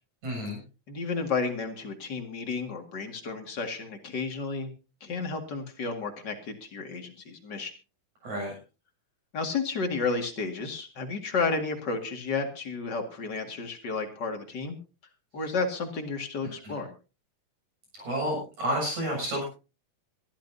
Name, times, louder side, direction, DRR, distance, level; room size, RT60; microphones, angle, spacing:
voice 1, 0.2-0.6 8.2-8.5 16.6-16.8 17.9-19.5, equal, 55° right, -1 dB, 8.5 m, -30 dB
voice 2, 0.9-4.7 5.0-7.7 9.3-14.8 15.3-16.9, left 4 dB, 35° left, 4 dB, 2.2 m, -32 dB
23.5 x 13.5 x 2.7 m, 0.33 s
omnidirectional pair, 4.0 m